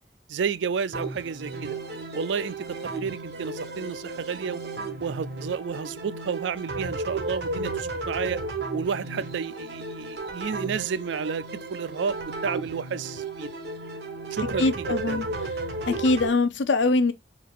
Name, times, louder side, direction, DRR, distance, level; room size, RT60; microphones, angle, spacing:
voice 1, 0.3-1.8 2.1-4.6 5.0-8.4 8.7-13.5 14.3-15.2, right 6 dB, 85° right, 0.4 m, -31 dB
sound 1, 0.9-16.3, right 2 dB, 65° right, 1.3 m, -34 dB
voice 2, 14.6-15.3 15.9-17.1, left 3 dB, 90° left, 0.6 m, -22 dB
4.4 x 4.0 x 2.5 m
head